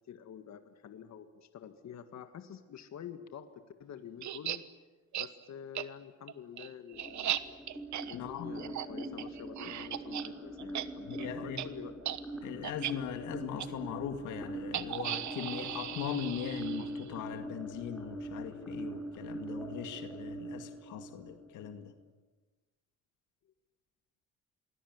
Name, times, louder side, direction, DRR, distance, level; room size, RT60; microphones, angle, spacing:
voice 1, 0.1-3.5 3.8-4.6 5.2-7.4 8.1-11.9, left 8 dB, 65° left, 8 dB, 1.9 m, -47 dB
sound 1, 4.2-4.6 5.1-5.3 5.8-5.9 6.3-10.3 10.6-10.9 11.1-11.3 11.6-11.7 12.0-12.2 12.6-12.9 13.6-13.7 14.7-17.1, right 12 dB, 70° right, 1.3 m, -37 dB
sound 2, 6.9-21.9, right 1 dB, ahead, 7.2 m, -43 dB
voice 2, 8.1-8.5 11.1-11.6 12.4-21.9, left 9 dB, 90° left, 7 dB, 2.3 m, -40 dB
27.5 x 20.5 x 9.6 m, 1.2 s
cardioid pair, 90°, 30 cm